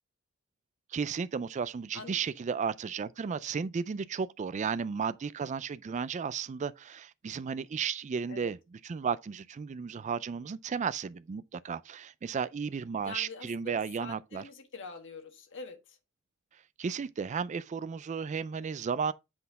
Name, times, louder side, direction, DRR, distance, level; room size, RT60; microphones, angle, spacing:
voice 1, 0.9-8.6 8.8-14.4 16.8-19.1, right 6 dB, 35° right, 0.3 m, -34 dB
voice 2, 13.0-16.0, left 4 dB, 60° left, 1.4 m, -45 dB
7.8 x 4.2 x 4.0 m
head